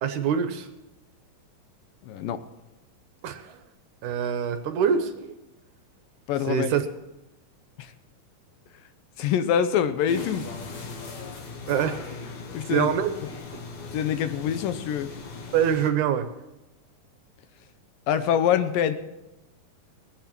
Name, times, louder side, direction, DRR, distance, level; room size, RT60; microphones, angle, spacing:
voice 1, 0.0-0.7 3.2-3.6 4.0-5.3 6.5-6.8 11.7-12.0 12.7-13.1 15.5-16.3, right 8 dB, 70° right, 9 dB, 2.2 m, -24 dB
voice 2, 2.0-2.4 6.3-6.7 7.8-7.9 9.2-10.5 12.5-12.9 13.2-13.3 13.9-15.1 18.1-18.9, left 9 dB, 80° left, 11 dB, 2.5 m, -25 dB
sound 1, 10.1-15.9, left 4 dB, 60° left, 2.4 m, -38 dB
20.0 x 8.6 x 6.0 m, 1.0 s
omnidirectional pair, 4.0 m